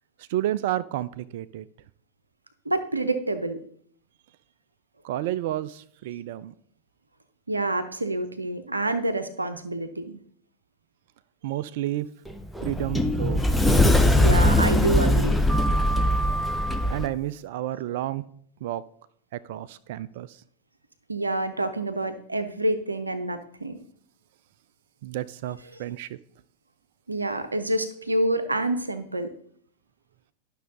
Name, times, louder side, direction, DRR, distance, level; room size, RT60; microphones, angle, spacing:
voice 1, 0.2-1.7 5.0-6.5 11.4-12.1 12.6-13.5 16.9-18.2 18.6-18.8 19.3-20.4 25.0-26.2, right 13 dB, 50° right, 0.3 m, -31 dB
voice 2, 2.7-3.6 7.5-10.2 14.2-15.4 21.1-23.8 27.1-29.3, right 2 dB, 80° right, 0.7 m, -27 dB
Sliding door, 12.3-17.1, left 1 dB, 5° left, 0.7 m, -21 dB
11.5 x 6.1 x 3.7 m
figure-of-eight pair, 90°, 0 cm